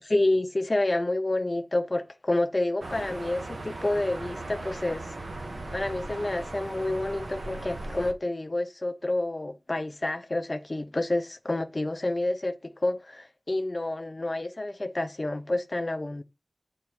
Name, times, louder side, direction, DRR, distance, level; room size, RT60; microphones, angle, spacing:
voice 1, 0.0-5.1 5.7-16.2, left 2 dB, 40° left, 0.5 m, -29 dB
sound 1, 2.8-8.1, right 2 dB, 75° right, 1.3 m, -38 dB
6.9 x 4.1 x 4.2 m
wide cardioid pair, 65°, 0 cm